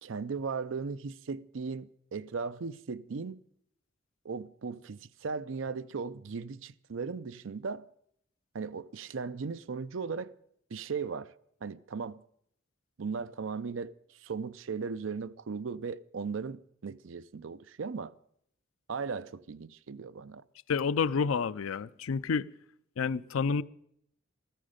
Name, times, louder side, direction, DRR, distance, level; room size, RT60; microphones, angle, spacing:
voice 1, 0.0-3.4 4.2-7.8 8.5-10.3 10.7-11.3 11.6-12.2 13.0-18.1 18.9-20.4, right 5 dB, 70° right, 0.5 m, -37 dB
voice 2, 20.7-22.5 23.0-23.6, left 5 dB, 85° left, 0.5 m, -29 dB
15.0 x 13.5 x 5.1 m
head